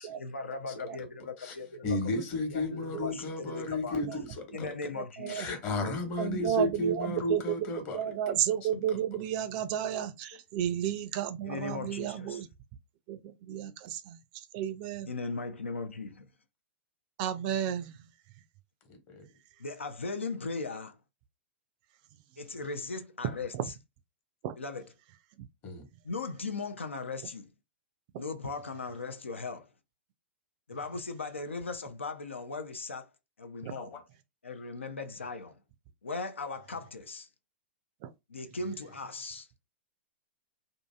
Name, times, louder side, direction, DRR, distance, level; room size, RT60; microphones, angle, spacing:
voice 1, 0.0-2.0 2.5-2.7 3.0-4.0 4.5-5.5 11.5-12.4 15.1-16.3 19.6-21.0 22.4-23.8 24.6-24.9 26.0-27.5 28.2-29.7 30.7-33.1 33.4-34.0 34.4-35.6 36.0-37.3 38.3-39.5, left 3 dB, 85° left, 0.4 m, -38 dB
voice 2, 1.8-4.7 5.3-8.3 8.6-9.0 18.9-19.3 25.6-25.9 33.8-34.0, left 2 dB, 35° left, 1.1 m, -33 dB
voice 3, 6.2-7.4 7.9-12.5 13.1-13.2 13.5-14.2 14.5-15.1 17.2-17.8 24.4-24.5, right 10 dB, 45° right, 0.4 m, -32 dB
2.7 x 2.5 x 2.3 m
figure-of-eight pair, 110°, 6 cm